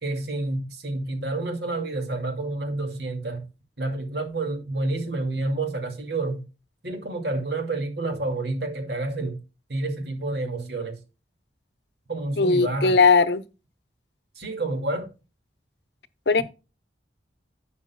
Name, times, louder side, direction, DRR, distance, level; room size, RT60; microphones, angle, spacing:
voice 1, 0.0-3.5 3.8-6.5 6.8-9.4 9.7-11.0 12.1-13.0 14.4-15.1, right 2 dB, 65° right, 2.4 m, -29 dB
voice 2, 12.4-13.4 16.3-16.4, left 4 dB, 70° left, 0.9 m, -18 dB
11.5 x 8.5 x 2.3 m
head